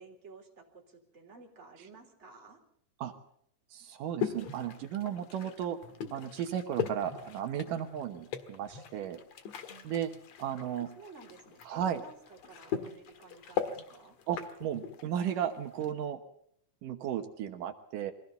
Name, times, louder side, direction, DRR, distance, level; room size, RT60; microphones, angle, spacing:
voice 1, 0.0-2.6 11.0-14.2, right 4 dB, 20° right, 1 dB, 3.7 m, -53 dB
voice 2, 3.7-5.8 6.1-9.2 9.8-10.1 10.4-10.9 11.6-12.0 14.3-16.2 16.8-18.1, right 9 dB, 75° right, 6 dB, 2.8 m, -35 dB
sound 1, 4.2-15.9, left 8 dB, 55° left, 2.5 m, -40 dB
23.0 x 17.0 x 6.9 m, 0.70 s
omnidirectional pair, 3.8 m